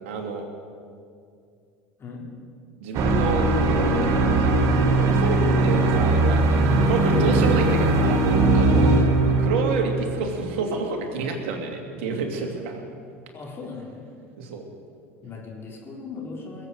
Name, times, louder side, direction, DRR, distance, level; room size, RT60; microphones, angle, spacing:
voice 1, 0.1-0.4 2.8-6.4 6.8-8.2 8.5-8.9 9.4-12.8 14.4-14.6, right 4 dB, 70° right, 2 dB, 2.6 m, -29 dB
sound 1, 2.9-10.5, right 2 dB, 55° right, 1.7 m, -20 dB
voice 2, 8.6-9.0 13.3-14.0 15.2-16.7, left 5 dB, 35° left, -2 dB, 4.3 m, -38 dB
21.0 x 8.0 x 7.9 m, 2.4 s
hypercardioid pair, 80°, 7 cm